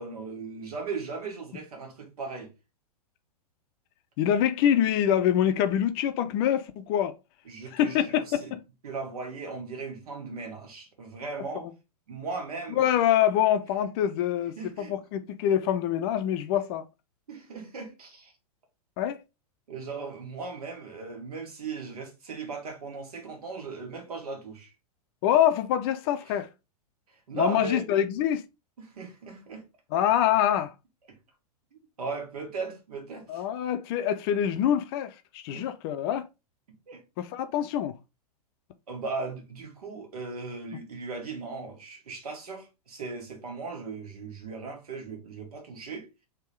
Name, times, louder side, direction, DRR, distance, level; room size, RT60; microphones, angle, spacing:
voice 1, 0.0-2.5 7.5-8.5 8.8-11.7 12.1-12.8 14.6-15.0 17.3-18.3 19.7-24.7 27.1-27.8 28.8-29.6 31.1-31.2 32.0-33.4 35.5-35.7 36.9-37.0 38.9-46.1, right 4 dB, 65° right, 1.8 m, -37 dB
voice 2, 4.2-7.1 7.7-8.6 12.8-16.8 19.0-19.2 25.2-26.5 27.3-28.4 29.9-30.7 33.3-36.3 37.2-37.9, left 10 dB, 40° left, 0.6 m, -25 dB
3.6 x 2.9 x 4.4 m
figure-of-eight pair, 105°, 20 cm